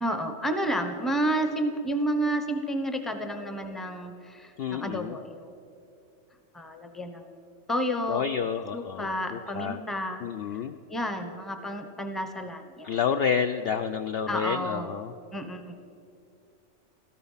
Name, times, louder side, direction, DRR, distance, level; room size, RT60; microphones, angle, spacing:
voice 1, 0.0-5.5 6.5-7.3 7.7-8.3 8.7-10.3 10.9-13.0 14.3-14.9 15.3-15.8, right 1 dB, ahead, 7 dB, 0.8 m, -30 dB
voice 2, 4.6-5.2 8.1-9.8 10.2-10.7 12.8-15.1, left 7 dB, 65° left, 8 dB, 0.6 m, -29 dB
16.5 x 13.5 x 5.7 m, 2.5 s
omnidirectional pair, 1.3 m